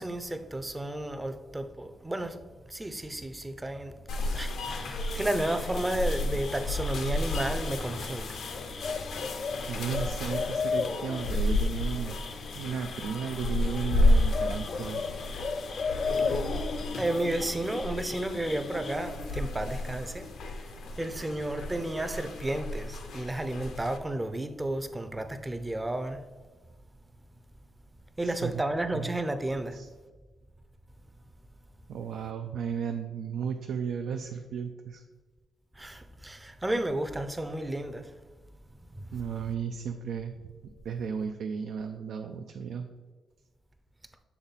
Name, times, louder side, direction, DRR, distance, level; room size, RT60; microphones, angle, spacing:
voice 1, 0.0-2.4 2.7-8.4 16.3-16.4 17.0-20.3 20.6-20.7 21.0-26.2 28.2-29.8 35.8-38.1 38.9-39.1, right 1 dB, 15° right, 0.5 m, -32 dB
sound 1, 4.1-24.0, left 2 dB, 80° left, 0.7 m, -32 dB
sound 2, 4.4-18.9, left 5 dB, 45° left, 0.3 m, -37 dB
voice 2, 9.7-12.2 12.5-15.0 28.2-28.6 28.9-29.2 29.7-29.9 31.9-35.0 39.1-42.9, right 7 dB, 80° right, 0.3 m, -34 dB
7.1 x 3.5 x 4.0 m
cardioid pair, 90°, 0 cm